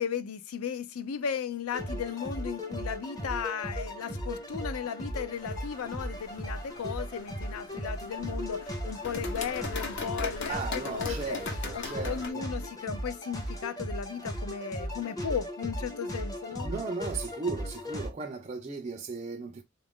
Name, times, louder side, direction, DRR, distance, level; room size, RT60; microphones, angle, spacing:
voice 1, 0.0-11.4 11.7-16.7, left 7 dB, 80° left, 0.5 m, -36 dB
sound 1, 1.7-18.1, equal, 15° left, 0.6 m, -37 dB
sound 2, 5.3-12.3, left 4 dB, 55° left, 0.9 m, -40 dB
voice 2, 10.5-12.5 16.6-19.6, right 4 dB, 30° right, 0.4 m, -36 dB
3.9 x 2.4 x 3.5 m
head